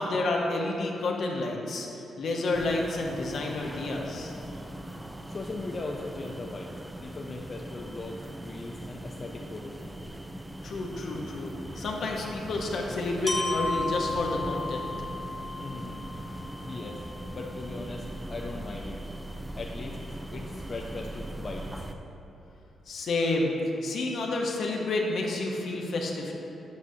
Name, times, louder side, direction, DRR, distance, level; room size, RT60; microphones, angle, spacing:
voice 1, 0.0-4.3 10.6-14.9 22.9-23.5 23.8-26.4, left 2 dB, 70° left, 0 dB, 0.9 m, -30 dB
sound 1, 2.5-21.9, right 1 dB, 10° right, 0.4 m, -40 dB
voice 2, 5.3-6.7 7.0-9.9 15.6-16.0 16.6-17.0 17.3-19.0 19.6-20.0 20.3-21.7, left 3 dB, 45° left, 0 dB, 0.5 m, -39 dB
Glockenspiel, 13.3-17.2, left 2 dB, 15° left, 0.8 m, -34 dB
8.4 x 6.1 x 2.7 m, 2.9 s
cardioid pair, 70°, 0 cm